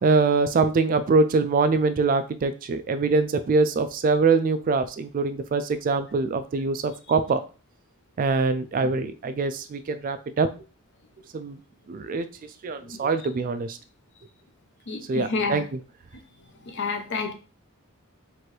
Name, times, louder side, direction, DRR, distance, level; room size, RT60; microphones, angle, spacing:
voice 1, 0.0-7.4 8.2-10.5 11.3-11.6 11.9-12.3 12.6-13.8 15.1-15.6, right 4 dB, 40° right, 10 dB, 0.3 m, -23 dB
voice 2, 14.9-15.6 16.7-17.3, left 4 dB, 55° left, 6 dB, 0.6 m, -29 dB
4.4 x 2.6 x 3.2 m, 0.34 s
head